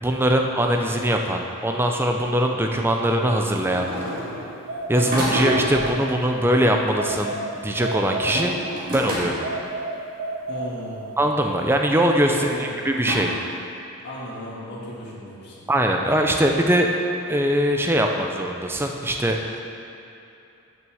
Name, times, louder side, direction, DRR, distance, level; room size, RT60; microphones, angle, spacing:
voice 1, 0.0-3.9 4.9-8.5 8.9-9.4 11.2-13.3 15.7-16.9 17.3-19.6, right 1 dB, 10° right, 2 dB, 0.5 m, -21 dB
sound 1, 3.7-4.5 5.1-5.9 8.2-9.6 10.6-10.7 11.5-11.6 13.0-13.2, equal, 40° right, 1.8 m, -28 dB
sound 2, 4.7-6.4 7.0-8.9 9.4-11.3, right 2 dB, 75° right, 0.7 m, -31 dB
voice 2, 10.5-11.1 12.3-12.8 14.0-15.6, equal, 50° left, -6 dB, 1.9 m, -35 dB
6.3 x 6.2 x 7.0 m, 2.8 s
head